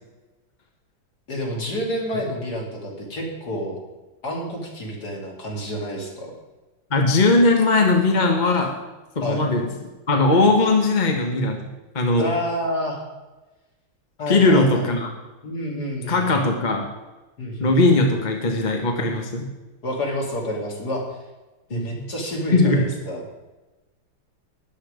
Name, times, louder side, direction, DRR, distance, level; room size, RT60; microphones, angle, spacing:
voice 1, 1.3-3.8 4.2-6.3 9.2-9.4 12.2-13.0 14.2-14.9 15.4-16.5 17.4-17.8 19.8-21.0 21.7-23.2, equal, 55° left, -1 dB, 3.2 m, -29 dB
voice 2, 6.9-8.7 9.2-9.7 10.1-11.6 11.9-12.3 14.3-15.1 16.1-16.9 17.6-19.5 21.7-22.0 22.5-22.8, left 2 dB, 25° left, 2 dB, 1.3 m, -19 dB
13.0 x 9.9 x 5.1 m, 1.1 s
omnidirectional pair, 2.1 m